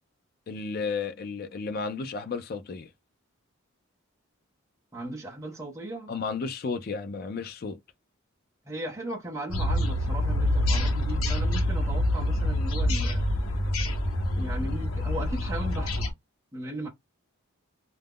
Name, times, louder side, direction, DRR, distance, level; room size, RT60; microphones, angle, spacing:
voice 1, 0.5-2.9 6.1-7.8, left 4 dB, 45° left, 0.4 m, -33 dB
voice 2, 4.9-6.1 8.7-13.2 14.3-16.1 16.5-16.9, right 1 dB, 15° right, 0.5 m, -37 dB
sound 1, 9.5-16.1, left 1 dB, 85° left, 0.8 m, -26 dB
2.3 x 2.0 x 3.5 m
head